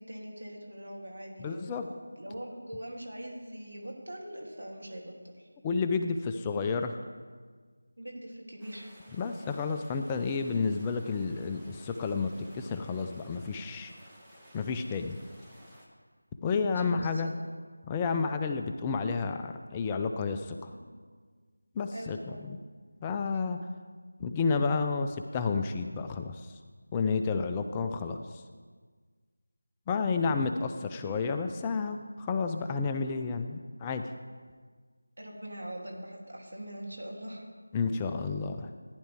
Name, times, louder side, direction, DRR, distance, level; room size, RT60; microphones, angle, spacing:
voice 1, 0.0-5.5 8.0-8.9 16.7-17.3 20.9-21.0 21.9-22.4 35.2-37.5, right 1 dB, 75° right, 0 dB, 2.8 m, -42 dB
voice 2, 1.4-1.9 5.6-7.0 9.2-13.9 14.5-15.2 16.4-17.3 17.9-20.7 21.7-22.6 23.0-23.6 24.2-26.6 26.9-28.4 29.9-34.0 37.7-38.7, left 4 dB, 15° left, 6 dB, 0.4 m, -31 dB
sound 1, 8.6-15.9, equal, ahead, 1.2 m, -55 dB
14.5 x 10.0 x 3.5 m, 1.5 s
figure-of-eight pair, 165°, 0 cm